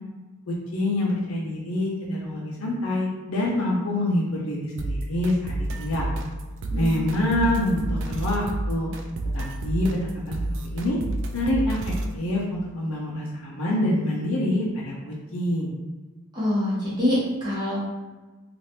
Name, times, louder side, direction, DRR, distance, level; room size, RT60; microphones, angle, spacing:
voice 1, 0.5-6.1 6.8-8.9 9.3-10.4 10.7-11.0 11.3-15.7, left 1 dB, 70° left, -2 dB, 0.5 m, -26 dB
sound 1, 4.8-12.2, right 1 dB, 60° right, 0.3 m, -30 dB
voice 2, 16.3-17.8, left 1 dB, 20° right, -9 dB, 1.2 m, -25 dB
3.1 x 2.4 x 2.8 m, 1.2 s
head